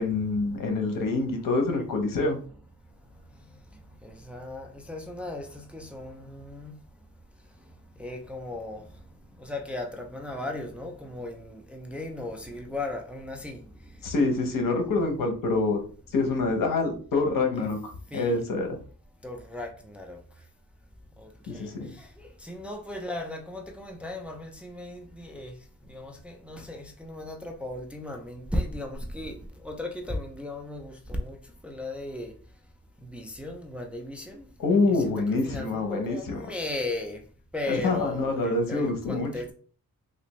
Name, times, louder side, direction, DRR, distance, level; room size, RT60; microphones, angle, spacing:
voice 1, 0.0-2.4 14.0-15.8 16.1-18.7 21.5-21.9 34.6-36.4 37.7-39.3, left 3 dB, 85° left, 0.9 m, -26 dB
voice 2, 4.0-6.8 8.0-8.8 9.4-13.6 17.5-17.7 18.1-18.4 19.2-20.2 21.2-25.5 25.9-31.4 31.6-32.3 33.0-34.4 34.9-37.2 37.5-39.5, left 2 dB, 5° right, 0.3 m, -36 dB
3.3 x 2.5 x 3.0 m
wide cardioid pair, 170°, 32 cm